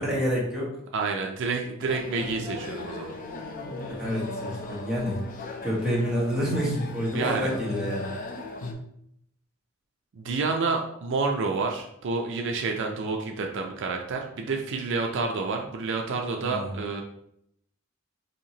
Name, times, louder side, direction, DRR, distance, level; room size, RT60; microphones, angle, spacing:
voice 1, 0.1-0.7 4.0-5.2 5.6-8.1 16.4-16.7, equal, 5° right, -6 dB, 1.2 m, -28 dB
voice 2, 0.9-3.2 7.1-7.5 10.1-17.0, right 4 dB, 60° right, 2 dB, 0.4 m, -29 dB
sound 1, 1.8-8.7, left 2 dB, 40° left, 0.5 m, -36 dB
4.3 x 2.8 x 2.8 m, 0.73 s
head